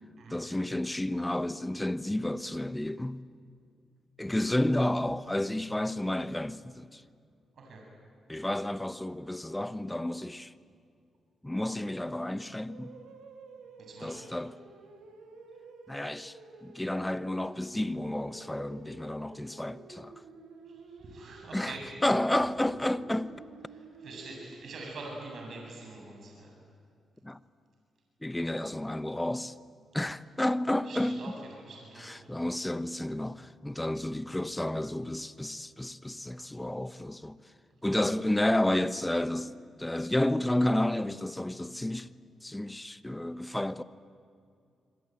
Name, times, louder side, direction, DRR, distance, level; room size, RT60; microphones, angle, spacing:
voice 1, 0.3-3.2 4.2-7.0 8.3-10.5 11.4-13.0 14.0-14.5 15.9-20.1 21.5-21.7 22.0-23.3 27.2-27.4 28.2-29.5 29.9-31.2 32.0-37.4 37.8-39.5 39.8-42.1 42.4-43.8, left 1 dB, 10° left, 1.1 m, -31 dB
voice 2, 7.5-7.8 13.8-14.2 20.7-22.0 23.7-26.5 30.8-32.3, right 2 dB, 65° right, 7.8 m, -45 dB
sound 1, 12.7-24.5, right 4 dB, 90° right, 3.3 m, -51 dB
27.0 x 23.0 x 9.2 m
supercardioid pair, 60°, 0 cm